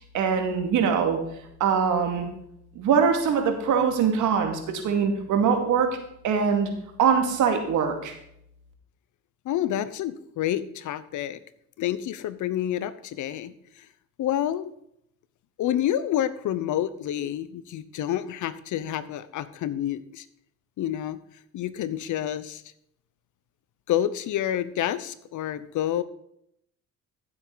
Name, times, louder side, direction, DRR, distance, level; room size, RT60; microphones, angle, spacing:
voice 1, 0.1-1.2 1.6-2.3 2.8-5.9 6.2-6.7 7.0-8.1, right 6 dB, 80° right, 4 dB, 2.3 m, -23 dB
voice 2, 9.4-11.4 11.8-13.9 14.2-14.7 15.6-20.2 20.8-21.2 21.5-22.6 23.9-26.0, left 11 dB, 75° left, 15 dB, 0.9 m, -28 dB
15.0 x 7.9 x 4.0 m, 0.74 s
cardioid pair, 90°, 30 cm